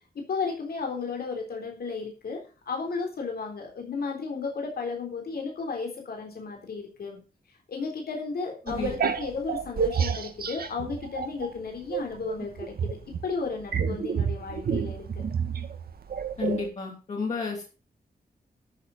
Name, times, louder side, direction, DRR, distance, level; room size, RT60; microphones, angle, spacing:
voice 1, 0.2-7.2 7.7-12.7 13.2-15.2, left 4 dB, 80° left, 2 dB, 3.8 m, -33 dB
voice 2, 8.7-9.1 16.4-17.6, left 5 dB, 45° left, -2 dB, 3.6 m, -32 dB
sound 1, 8.7-11.5 11.9-16.7, right 6 dB, 75° right, 1.7 m, -29 dB
13.0 x 7.2 x 5.4 m, 0.34 s
wide cardioid pair, 170°, 16 cm